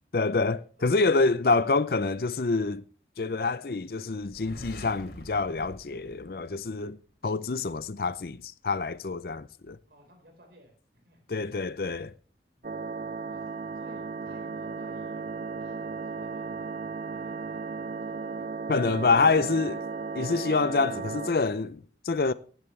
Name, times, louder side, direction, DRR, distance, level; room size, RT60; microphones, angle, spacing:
voice 1, 0.1-2.8 3.2-7.0 7.2-9.8 11.3-12.1 18.7-19.8 20.1-22.3, left 3 dB, 55° left, 0.5 m, -26 dB
voice 2, 0.8-1.3 9.9-10.7 11.0-11.3 12.6-12.7 13.3-15.3 15.6-16.7 17.1-19.0 20.1-20.2, equal, 70° right, 4.5 m, -55 dB
sound 1, 4.2-7.1, left 1 dB, 70° left, 3.1 m, -46 dB
sound 2, 12.6-21.3, right 4 dB, 45° right, 0.5 m, -35 dB
15.5 x 10.5 x 3.3 m
head